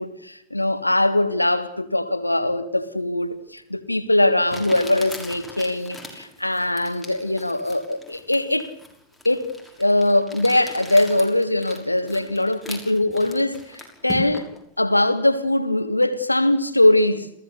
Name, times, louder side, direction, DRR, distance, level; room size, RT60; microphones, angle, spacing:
voice 1, 0.0-8.7 9.3-14.5 14.8-17.3, left 1 dB, 85° left, 1.6 m, -21 dB
Crumpling crinkling, 3.6-3.7 4.5-14.6, left 2 dB, ahead, 6.3 m, -39 dB
28.0 x 16.0 x 8.3 m
figure-of-eight pair, 90°, 0 cm